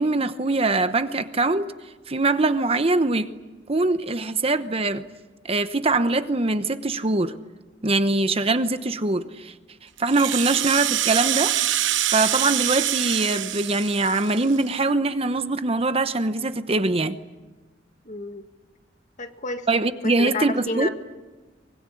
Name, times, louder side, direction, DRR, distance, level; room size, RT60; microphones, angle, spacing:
voice 1, 0.0-1.7 2.1-3.3 3.7-5.0 5.4-7.3 7.8-9.5 10.0-11.6 12.1-17.2 19.7-20.9, right 2 dB, 30° right, 0.9 m, -23 dB
Rattle (instrument), 10.0-14.7, right 12 dB, 85° right, 0.9 m, -25 dB
voice 2, 18.0-18.4 19.2-19.7 20.0-20.9, left 2 dB, 40° left, 1.8 m, -30 dB
24.5 x 22.5 x 9.9 m
head